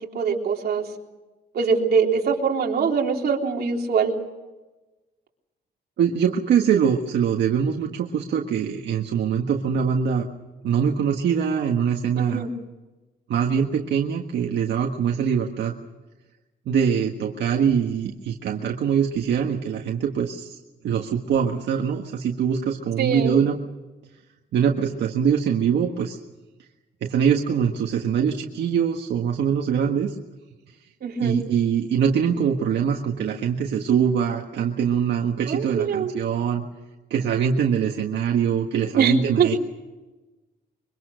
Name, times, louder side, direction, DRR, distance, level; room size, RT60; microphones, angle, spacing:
voice 1, 0.1-0.9 1.5-4.2 12.2-12.5 23.0-23.4 31.0-31.4 35.5-36.1 39.0-39.6, right 5 dB, 65° right, 0 dB, 3.6 m, -23 dB
voice 2, 6.0-10.3 10.6-12.4 13.3-15.8 16.7-20.6 20.8-23.6 24.5-26.2 27.0-30.1 31.2-36.6 37.1-39.6, right 7 dB, 85° right, 1 dB, 1.6 m, -23 dB
25.0 x 24.0 x 6.5 m, 1.1 s
wide cardioid pair, 145°, 18 cm